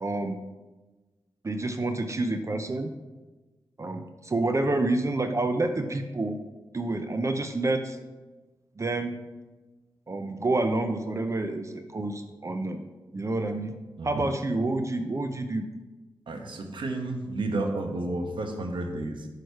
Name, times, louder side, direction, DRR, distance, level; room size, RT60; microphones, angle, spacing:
voice 1, 0.0-0.4 1.4-2.9 3.8-6.4 6.7-8.0 8.8-9.2 10.1-12.8 13.1-13.8 14.0-15.7, right 2 dB, 35° right, 7 dB, 0.5 m, -28 dB
voice 2, 16.3-19.3, right 2 dB, 70° right, 5 dB, 0.9 m, -31 dB
6.1 x 4.9 x 4.6 m, 1.2 s
cardioid pair, 45°, 9 cm